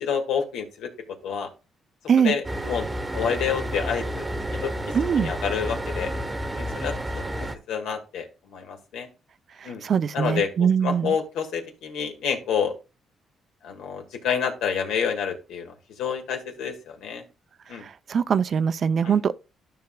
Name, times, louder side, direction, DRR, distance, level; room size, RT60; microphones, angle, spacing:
voice 1, 0.0-0.9 1.2-1.5 2.2-2.9 3.1-4.2 4.6-4.7 5.2-6.1 6.6-9.1 9.6-9.8 10.1-10.5 10.8-12.7 13.6-17.2 17.7-17.8 19.0-19.2, left 7 dB, 85° left, 1.6 m, -28 dB
sound 1, 2.4-7.6, right 1 dB, 15° right, 0.9 m, -30 dB
voice 2, 4.9-5.3 9.6-11.2 17.8-19.3, right 7 dB, 50° right, 0.4 m, -22 dB
12.5 x 5.7 x 2.2 m
cardioid pair, 90°, 0 cm